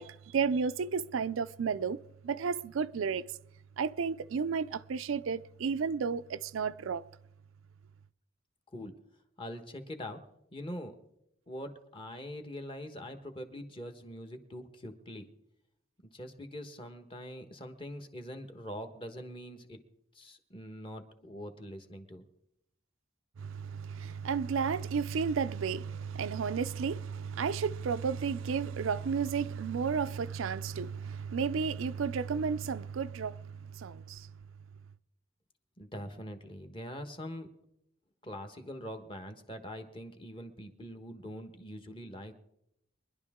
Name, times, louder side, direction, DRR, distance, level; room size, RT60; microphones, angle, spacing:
voice 1, 0.0-2.0 2.2-3.2 3.8-7.0 23.4-34.3, right 6 dB, 85° right, 0.4 m, -32 dB
voice 2, 9.4-10.2 10.5-11.0 11.5-15.3 16.0-19.8 20.1-22.2 35.8-37.5 38.2-42.3, equal, 25° left, 1.2 m, -43 dB
23.0 x 11.0 x 3.6 m
head